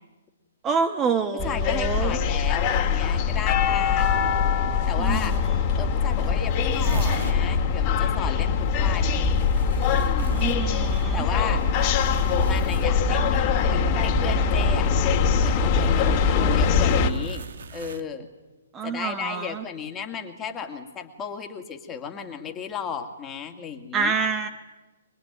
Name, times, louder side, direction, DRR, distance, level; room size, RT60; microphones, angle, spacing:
voice 1, 0.6-2.2 5.0-5.4 10.3-11.3 18.7-19.6 23.9-24.5, right 5 dB, 20° right, 7 dB, 1.2 m, -27 dB
sound 1, 1.4-17.1, left 6 dB, 35° left, 2.4 m, -22 dB
voice 2, 1.4-4.3 4.9-5.4 5.8-9.3 10.0-10.4 11.1-11.7 12.4-18.3 18.8-24.1, left 7 dB, 20° left, 3 dB, 2.5 m, -34 dB
sound 2, 5.1-5.2 5.5-5.6 5.8-5.9 6.1-7.4 9.0-13.4 14.6-14.9 15.8-18.0, right 5 dB, 65° right, 1.4 m, -35 dB
24.5 x 21.5 x 9.5 m, 1.1 s
hypercardioid pair, 135°, 0 cm